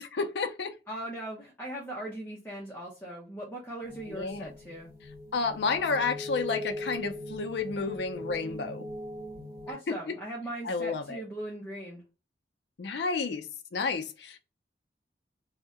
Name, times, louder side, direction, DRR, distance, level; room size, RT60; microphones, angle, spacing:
voice 1, 0.0-0.7 4.1-4.5 5.3-8.9 9.9-10.1 10.6-11.2 12.8-13.5 13.7-14.4, left 4 dB, 75° left, 0.4 m, -31 dB
voice 2, 0.9-4.9 9.7-12.0, right 1 dB, 10° left, 0.6 m, -39 dB
sound 1, 3.8-9.7, left 1 dB, 10° right, 1.4 m, -41 dB
2.6 x 2.1 x 3.5 m
head